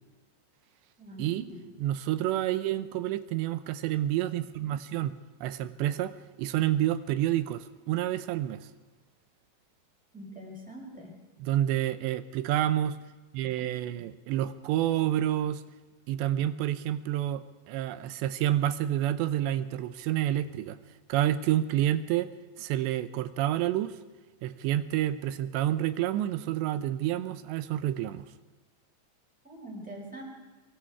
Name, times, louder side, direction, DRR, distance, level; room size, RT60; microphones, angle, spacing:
voice 1, 1.0-1.6 10.1-11.1 29.4-30.2, equal, ahead, -2 dB, 5.5 m, -43 dB
voice 2, 1.8-5.2 5.4-8.7 11.4-13.0 13.3-15.6 16.1-20.8 21.1-22.3 22.6-24.0 24.4-28.3, right 12 dB, 80° right, 13 dB, 2.9 m, -29 dB
24.5 x 23.0 x 4.7 m, 1.2 s
omnidirectional pair, 5.3 m